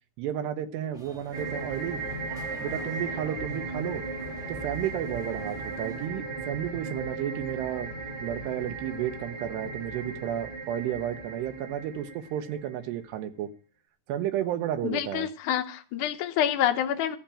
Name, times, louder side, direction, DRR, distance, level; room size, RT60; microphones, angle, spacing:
voice 1, 0.2-2.0 2.6-4.0 4.5-7.9 8.2-13.5 14.1-15.3, right 10 dB, 80° right, 8 dB, 2.9 m, -32 dB
sound 1, 0.9-6.1, equal, 5° right, 0.4 m, -49 dB
sound 2, 1.3-12.9, right 3 dB, 20° right, 1.1 m, -36 dB
voice 2, 14.8-17.2, left 10 dB, 75° left, 5 dB, 1.8 m, -27 dB
14.5 x 5.9 x 8.8 m, 0.39 s
omnidirectional pair, 5.0 m